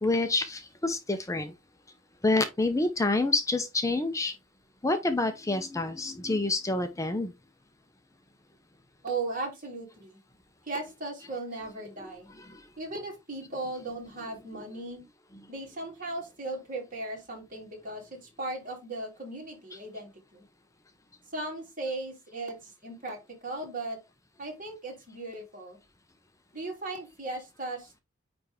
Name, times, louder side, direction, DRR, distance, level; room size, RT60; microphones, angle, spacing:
voice 1, 0.0-1.5 2.2-4.3 4.8-7.3 12.5-12.6, left 2 dB, 15° left, 0.7 m, -27 dB
voice 2, 9.0-10.2 10.6-12.3 12.8-15.0 15.5-20.4 21.3-24.0 24.4-25.8 26.5-28.0, right 2 dB, 45° right, 3.0 m, -37 dB
9.3 x 3.4 x 3.5 m
head